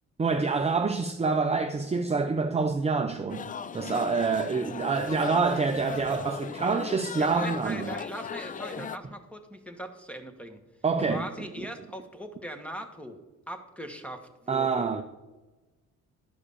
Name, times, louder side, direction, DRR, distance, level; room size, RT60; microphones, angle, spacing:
voice 1, 0.2-3.5 3.7-7.9 10.8-11.2 14.5-15.0, right 4 dB, 20° right, 0.6 m, -26 dB
sound 1, 3.3-9.0, left 6 dB, 25° left, 0.4 m, -37 dB
voice 2, 7.1-10.6 11.1-13.2 13.5-14.9, equal, 5° left, 1.3 m, -40 dB
11.5 x 4.9 x 6.6 m
cardioid pair, 90°, 30 cm